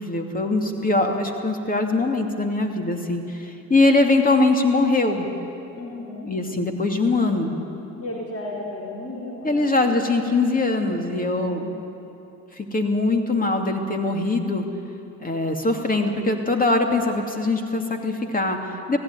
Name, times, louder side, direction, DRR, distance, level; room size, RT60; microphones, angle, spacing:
voice 1, 0.0-5.3 6.3-7.5 9.4-11.8 12.5-14.7 15.2-19.0, left 2 dB, 25° left, 4 dB, 2.6 m, -22 dB
voice 2, 5.8-6.3 8.0-10.0 11.3-11.8, left 2 dB, 40° left, -3 dB, 4.5 m, -34 dB
18.0 x 15.0 x 9.8 m, 2.8 s
supercardioid pair, 80°, 35 cm